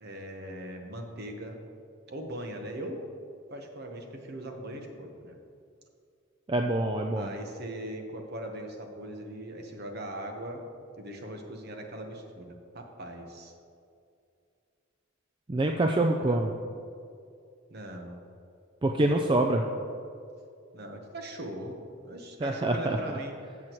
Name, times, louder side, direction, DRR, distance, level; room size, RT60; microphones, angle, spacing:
voice 1, 0.0-1.6 2.1-3.0 3.5-5.4 7.2-10.6 11.0-13.5 16.3-16.4 17.7-18.2 19.0-19.1 20.7-23.3, right 1 dB, 50° right, 3 dB, 1.1 m, -40 dB
voice 2, 6.5-7.3 15.5-16.5 18.8-19.6 22.4-23.2, right 2 dB, 25° right, 3 dB, 0.4 m, -26 dB
14.0 x 7.3 x 3.0 m, 2.4 s
head